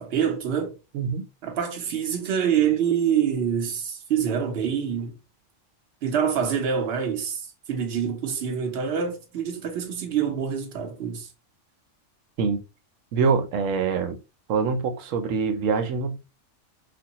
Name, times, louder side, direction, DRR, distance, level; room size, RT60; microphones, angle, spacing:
voice 1, 0.0-0.8 1.4-5.2 6.0-11.3, right 8 dB, 60° right, 0.9 m, -26 dB
voice 2, 0.9-1.2 12.4-12.6 13.1-14.2 14.5-16.2, right 5 dB, 90° right, 1.0 m, -24 dB
3.3 x 2.2 x 2.8 m
omnidirectional pair, 1.3 m